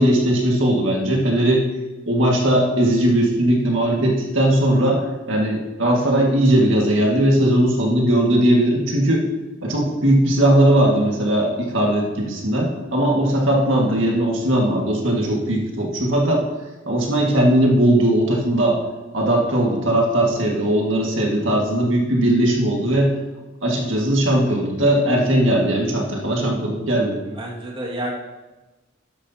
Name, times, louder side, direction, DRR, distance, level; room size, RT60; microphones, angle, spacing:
voice 1, 0.0-1.7 2.1-9.2 9.6-16.4 16.9-18.8 19.1-23.1 23.6-27.2, right 1 dB, 65° right, -1 dB, 1.9 m, -18 dB
voice 2, 27.2-28.1, right 1 dB, 25° right, -4 dB, 2.0 m, -30 dB
13.0 x 9.8 x 2.9 m, 1.1 s
head